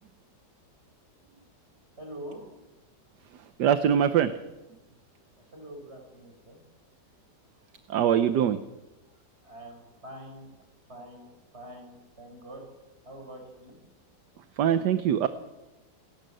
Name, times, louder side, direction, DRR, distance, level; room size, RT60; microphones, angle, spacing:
voice 1, 2.0-2.4 5.5-6.6 9.4-10.5 10.9-11.3 11.5-12.6 13.0-13.8, right 1 dB, 35° right, 2 dB, 6.0 m, -44 dB
voice 2, 3.6-4.3 7.9-8.6 14.6-15.3, right 9 dB, 75° right, 11 dB, 1.4 m, -23 dB
28.0 x 12.0 x 7.8 m, 1.0 s
omnidirectional pair, 1.9 m